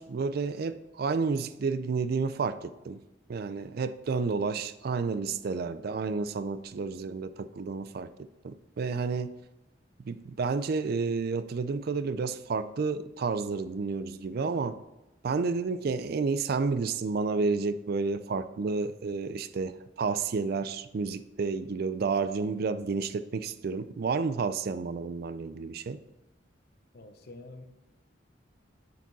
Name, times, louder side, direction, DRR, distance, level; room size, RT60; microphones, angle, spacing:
voice 1, 0.0-3.0 3.3-8.1 8.4-9.3 10.0-14.8 15.2-26.0, right 4 dB, 55° right, 13 dB, 0.4 m, -30 dB
voice 2, 26.9-27.7, left 2 dB, 60° left, 7 dB, 0.8 m, -47 dB
9.2 x 5.1 x 4.0 m, 0.99 s
head